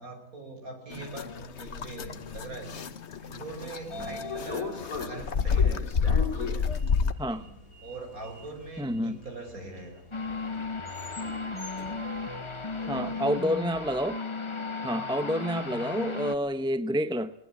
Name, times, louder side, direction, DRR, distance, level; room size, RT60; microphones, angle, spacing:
voice 1, 0.0-2.9 3.2-5.9 7.3-7.5 7.8-10.0 12.8-13.3, right 2 dB, 85° right, 3 dB, 5.7 m, -42 dB
sound 1, 0.9-7.1, left 6 dB, 55° left, 1.3 m, -29 dB
Sliding door, 3.3-13.5, left 4 dB, 75° left, 3.8 m, -41 dB
voice 2, 8.8-9.2 12.9-14.2 14.8-17.3, equal, 5° right, 13 dB, 0.5 m, -29 dB
sound 2, 10.1-16.3, left 4 dB, 20° left, 1.4 m, -35 dB
21.0 x 20.0 x 8.3 m, 0.70 s
omnidirectional pair, 1.5 m